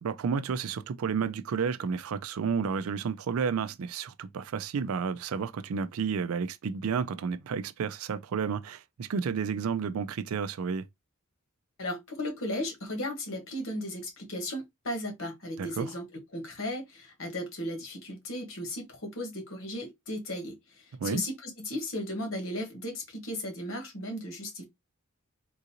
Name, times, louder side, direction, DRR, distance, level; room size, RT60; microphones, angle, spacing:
voice 1, 0.0-10.8 15.6-15.9 21.0-21.2, right 6 dB, 80° right, 0.4 m, -31 dB
voice 2, 11.8-24.6, left 1 dB, 65° left, 1.2 m, -36 dB
3.7 x 2.5 x 2.8 m
head